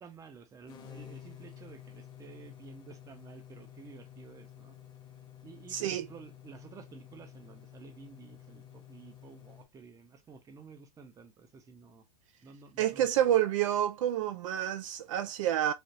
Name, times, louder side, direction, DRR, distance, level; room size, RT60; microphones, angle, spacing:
voice 1, 0.0-4.8 5.4-12.0 12.4-13.3, right 5 dB, 20° right, 0.7 m, -52 dB
sound 1, 0.7-9.7, left 10 dB, 25° left, 1.0 m, -51 dB
voice 2, 5.7-6.1 12.8-15.7, right 11 dB, 60° right, 0.4 m, -28 dB
3.4 x 2.4 x 2.6 m
hypercardioid pair, 120°, 18 cm